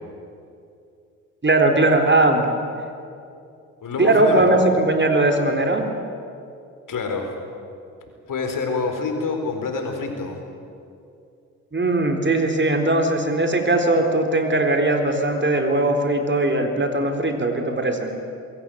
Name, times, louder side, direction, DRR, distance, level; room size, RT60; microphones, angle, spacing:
voice 1, 1.4-2.5 4.0-5.8 11.7-18.1, right 2 dB, 30° right, 4 dB, 3.9 m, -19 dB
voice 2, 3.8-4.6 6.9-7.3 8.3-10.4, left 4 dB, 55° left, 4 dB, 4.4 m, -26 dB
22.5 x 16.5 x 9.1 m, 2.5 s
hypercardioid pair, 45°, 38 cm